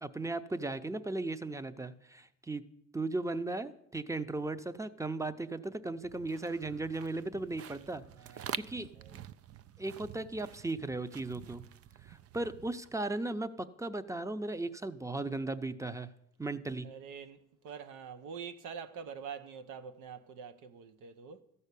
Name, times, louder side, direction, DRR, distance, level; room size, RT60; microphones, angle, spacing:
voice 1, 0.0-2.6 2.9-8.0 8.3-8.9 9.8-11.6 12.1-16.1 16.4-16.9, right 2 dB, 10° right, 0.6 m, -36 dB
sound 1, 6.0-13.3, right 10 dB, 50° right, 0.4 m, -47 dB
voice 2, 8.2-9.2 16.8-21.4, right 6 dB, 90° right, 0.9 m, -46 dB
13.5 x 5.6 x 8.3 m
cardioid pair, 90°, 30 cm